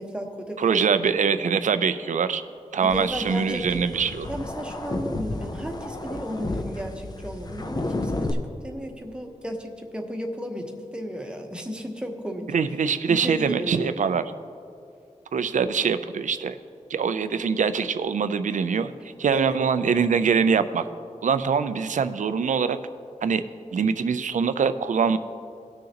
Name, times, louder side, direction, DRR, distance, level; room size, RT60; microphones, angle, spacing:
voice 1, 0.0-1.1 2.8-3.8 4.3-12.5 13.1-13.9 18.7-18.8 19.3-19.6, equal, 10° right, 2 dB, 1.0 m, -34 dB
voice 2, 0.6-2.4 2.7-4.3 12.5-14.2 15.3-16.6 16.9-18.9 19.2-20.9 21.2-22.8 23.2-23.4 23.7-25.2, right 6 dB, 85° right, 11 dB, 0.4 m, -23 dB
sound 1, 2.9-8.3, left 2 dB, 30° left, 0.6 m, -32 dB
19.0 x 6.5 x 2.9 m, 2.4 s
wide cardioid pair, 110°, 13 cm